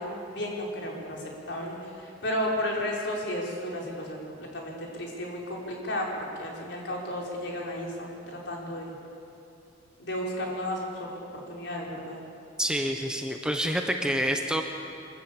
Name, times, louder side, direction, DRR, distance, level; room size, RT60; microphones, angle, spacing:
voice 1, 0.0-4.2 4.5-8.9 10.0-11.1 11.5-12.2, left 1 dB, 65° left, -2 dB, 4.6 m, -33 dB
voice 2, 12.6-14.6, equal, 5° right, 4 dB, 1.0 m, -27 dB
25.0 x 14.5 x 8.7 m, 2.6 s
head